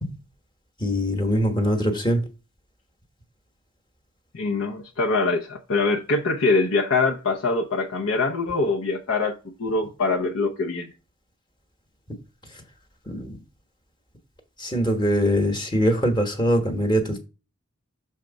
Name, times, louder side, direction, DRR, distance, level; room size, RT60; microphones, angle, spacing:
voice 1, 0.8-2.2 13.1-13.4 14.6-17.2, equal, 20° left, 1.1 m, -22 dB
voice 2, 4.3-10.9, left 3 dB, 75° left, 0.8 m, -24 dB
6.5 x 3.5 x 5.1 m
head